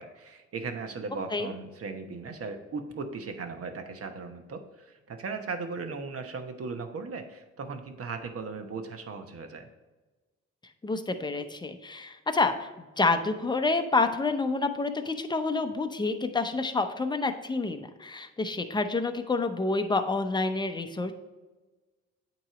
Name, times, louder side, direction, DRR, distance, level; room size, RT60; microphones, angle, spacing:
voice 1, 0.0-9.7, right 4 dB, 50° right, 6 dB, 1.0 m, -37 dB
voice 2, 10.8-21.1, left 3 dB, 15° left, 7 dB, 0.7 m, -28 dB
8.7 x 3.1 x 4.9 m, 1.2 s
cardioid pair, 90°, 30 cm